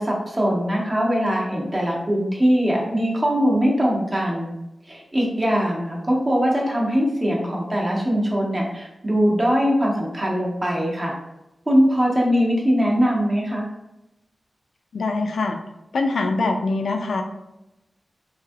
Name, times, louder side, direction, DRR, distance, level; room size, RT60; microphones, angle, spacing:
voice 1, 0.0-4.5 4.9-11.2 11.7-13.7, equal, 30° right, -3 dB, 0.8 m, -21 dB
voice 2, 14.9-15.6 15.9-17.2, left 3 dB, 90° left, 4 dB, 0.3 m, -23 dB
3.3 x 2.6 x 2.3 m, 0.94 s
wide cardioid pair, 85°, 0 cm